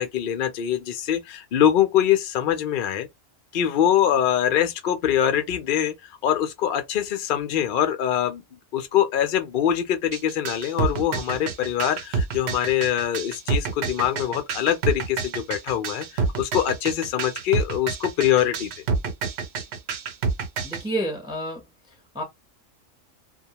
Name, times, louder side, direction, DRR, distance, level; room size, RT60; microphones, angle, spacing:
voice 1, 0.0-3.1 3.5-5.9 6.2-8.4 8.7-18.8, left 10 dB, 70° left, 0.5 m, -23 dB
sound 1, 10.1-20.8, right 4 dB, 60° right, 0.8 m, -28 dB
voice 2, 20.6-21.6 22.1-22.2, right 1 dB, 5° right, 0.4 m, -29 dB
2.2 x 2.2 x 2.8 m
omnidirectional pair, 1.4 m